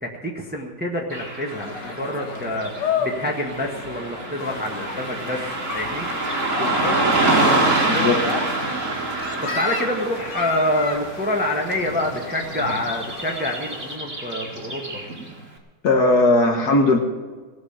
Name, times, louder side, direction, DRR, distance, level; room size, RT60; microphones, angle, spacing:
voice 1, 0.0-5.5 5.7-6.1 9.4-15.0, left 1 dB, 5° right, 1 dB, 1.3 m, -27 dB
Car passing by / Traffic noise roadway noise, 1.1-15.4, right 2 dB, 45° right, 2.2 m, -26 dB
sound 1, 1.5-8.8, left 7 dB, 90° left, 1.9 m, -33 dB
sound 2, 4.4-14.0, left 3 dB, 35° left, 1.3 m, -34 dB
voice 2, 6.6-8.4 15.8-17.0, left 2 dB, 65° left, 3 dB, 1.8 m, -20 dB
18.0 x 6.3 x 8.7 m, 1.4 s
omnidirectional pair, 1.8 m